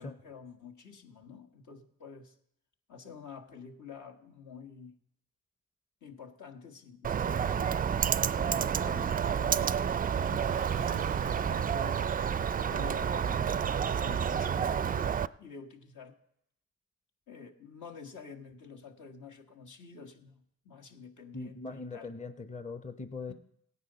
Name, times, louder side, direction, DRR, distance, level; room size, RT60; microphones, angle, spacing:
voice 1, 0.0-2.3 2.9-4.9 6.0-7.6 8.3-12.3 12.7-13.7 14.0-16.2 17.3-22.1 23.3-23.4, left 5 dB, 65° left, 4 dB, 1.5 m, -49 dB
Bird, 7.0-15.3, right 7 dB, 25° right, 0.4 m, -29 dB
Car, 9.7-14.1, right 13 dB, 90° right, 0.5 m, -50 dB
voice 2, 21.3-23.3, left 3 dB, 20° left, 10 dB, 0.8 m, -40 dB
16.5 x 9.6 x 4.0 m, 0.74 s
supercardioid pair, 50°, 33 cm